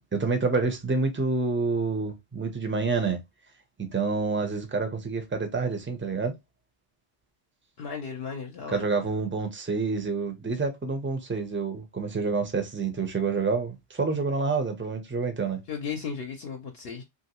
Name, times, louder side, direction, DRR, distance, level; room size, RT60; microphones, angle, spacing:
voice 1, 0.1-3.2 3.8-6.3 8.7-15.6, right 4 dB, 15° right, 0.5 m, -28 dB
voice 2, 7.8-9.1 15.7-17.0, left 6 dB, 65° left, 0.8 m, -35 dB
3.0 x 2.6 x 2.9 m
omnidirectional pair, 1.1 m